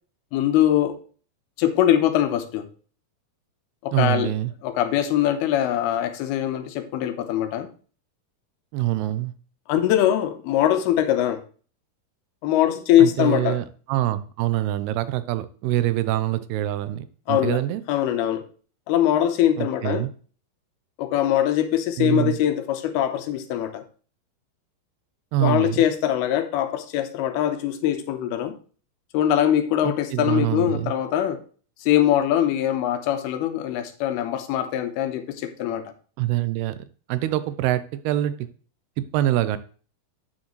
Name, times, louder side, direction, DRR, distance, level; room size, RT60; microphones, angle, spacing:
voice 1, 0.3-1.0 1.6-2.7 3.8-4.3 4.6-7.7 9.7-11.4 12.4-13.6 17.3-17.6 17.9-18.4 18.9-20.1 21.0-23.8 25.4-28.6 29.1-31.4 31.8-35.9, left 11 dB, 85° left, 8 dB, 2.7 m, -22 dB
voice 2, 3.9-4.5 8.7-9.3 13.0-17.8 19.6-20.1 22.0-22.4 25.3-25.8 29.8-30.9 36.2-36.8 37.1-38.5 39.0-39.6, right 14 dB, 90° right, 14 dB, 2.7 m, -25 dB
9.4 x 6.6 x 3.1 m, 0.39 s
omnidirectional pair, 4.5 m